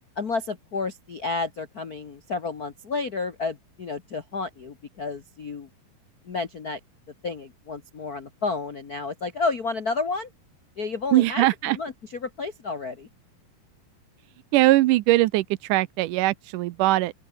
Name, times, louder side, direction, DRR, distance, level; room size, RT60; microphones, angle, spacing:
voice 1, 0.2-5.7 6.2-6.8 7.2-10.3 10.8-13.1, left 4 dB, 55° left, 1.0 m, -31 dB
voice 2, 11.1-11.8 14.5-17.1, right 17 dB, 80° right, 2.1 m, -21 dB
open air
omnidirectional pair, 3.8 m